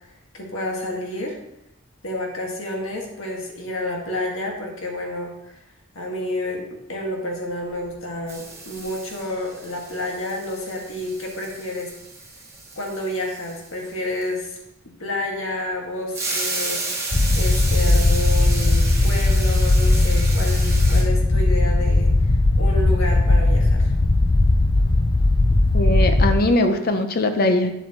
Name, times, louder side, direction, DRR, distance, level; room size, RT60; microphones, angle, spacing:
voice 1, 0.3-1.4 2.0-5.6 5.9-11.9 12.7-14.6 15.0-23.9, left 1 dB, 85° left, 0 dB, 1.7 m, -30 dB
sound 1, 7.6-8.0 8.3-14.6 16.1-21.0, right 3 dB, 15° right, 1.6 m, -33 dB
sound 2, 17.1-26.3, left 2 dB, 20° left, 0.4 m, -18 dB
voice 2, 25.7-27.7, left 1 dB, 45° left, 7 dB, 0.7 m, -20 dB
9.1 x 7.6 x 2.9 m, 0.82 s
head